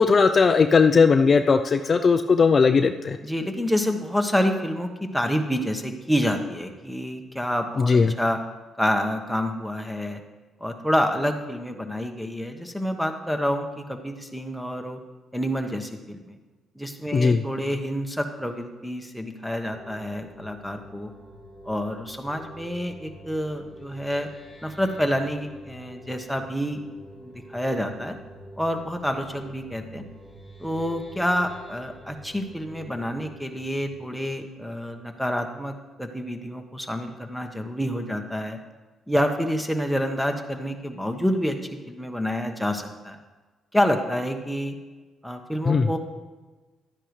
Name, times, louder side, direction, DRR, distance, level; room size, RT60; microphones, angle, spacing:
voice 1, 0.0-3.2 7.8-8.1 17.1-17.4 45.6-45.9, left 5 dB, 40° left, 7 dB, 0.4 m, -18 dB
voice 2, 3.2-8.4 8.8-10.2 10.6-15.0 15.3-16.4 16.8-21.1 21.6-24.3 24.6-26.8 27.2-28.2 28.6-30.0 30.6-38.6 39.1-41.6 41.9-43.2 43.7-44.7 45.2-46.0, equal, ahead, 5 dB, 1.1 m, -28 dB
sound 1, 19.7-35.2, equal, 35° right, 3.5 m, -47 dB
12.0 x 9.7 x 3.2 m, 1.3 s
cardioid pair, 90°, 0 cm